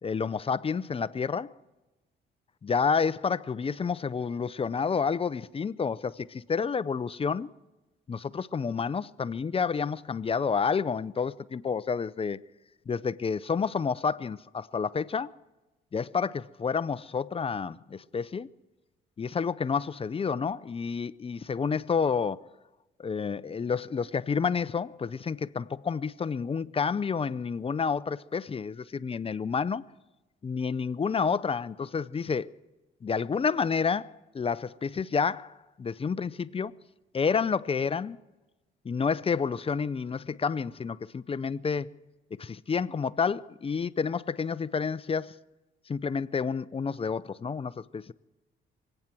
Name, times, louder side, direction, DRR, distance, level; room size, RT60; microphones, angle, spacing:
voice 1, 0.0-1.5 2.6-7.5 8.1-12.4 12.9-15.3 15.9-18.5 19.2-22.4 23.0-29.9 30.4-32.5 33.0-36.7 37.1-38.2 38.8-42.0 42.4-45.3 45.9-48.1, left 5 dB, 30° left, 0.6 m, -29 dB
25.0 x 9.1 x 6.0 m
cardioid pair, 90°, 20 cm